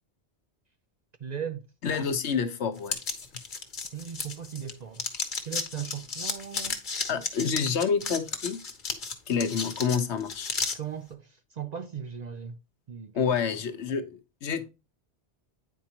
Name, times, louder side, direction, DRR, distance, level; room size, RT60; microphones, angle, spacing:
voice 1, 1.2-1.7 2.6-2.7 3.9-5.1 5.4-6.8 10.7-12.6 12.9-13.2, right 8 dB, 55° right, 0.5 m, -38 dB
voice 2, 1.8-3.0 7.1-8.6 9.3-10.5 13.1-14.7, left 6 dB, 80° left, 1.1 m, -28 dB
sound 1, 2.9-4.7 5.0-10.8, left 4 dB, 45° left, 1.2 m, -33 dB
9.0 x 4.6 x 2.8 m
omnidirectional pair, 1.1 m